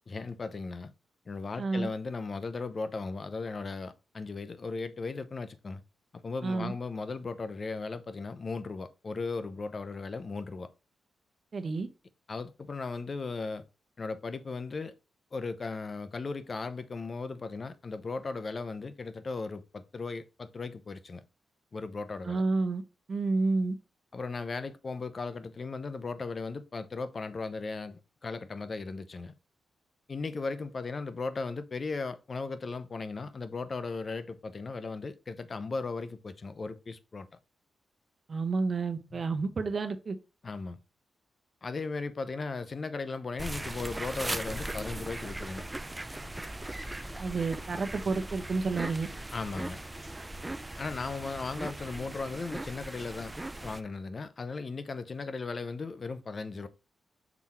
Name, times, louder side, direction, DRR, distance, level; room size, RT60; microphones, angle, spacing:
voice 1, 0.1-0.9 1.3-5.8 6.1-10.7 12.3-13.6 14.0-14.9 15.3-21.2 21.7-22.4 24.1-29.3 30.1-37.3 39.1-39.2 40.4-40.8 41.6-45.6 49.3-49.8 50.8-53.3 53.6-56.7, left 4 dB, 45° left, 0.7 m, -37 dB
voice 2, 1.6-1.9 6.4-6.7 11.5-11.9 22.2-22.8 23.1-23.7 38.3-40.2 47.2-49.1, right 3 dB, 50° right, 1.0 m, -30 dB
sound 1, 43.4-53.8, right 1 dB, 15° right, 0.5 m, -39 dB
6.1 x 3.6 x 4.3 m
cardioid pair, 80°, 0 cm